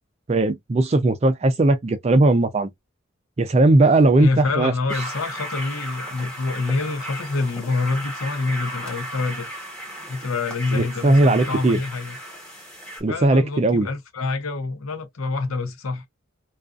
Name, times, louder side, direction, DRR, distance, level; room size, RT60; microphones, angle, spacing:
voice 1, 0.3-2.7 3.4-4.7 10.7-11.8 13.0-13.9, right 2 dB, 30° right, 0.4 m, -18 dB
voice 2, 4.2-9.5 10.1-12.2 13.1-16.1, left 3 dB, 90° left, 0.7 m, -26 dB
sound 1, 4.9-13.0, equal, 5° left, 1.1 m, -35 dB
2.4 x 2.4 x 2.3 m
head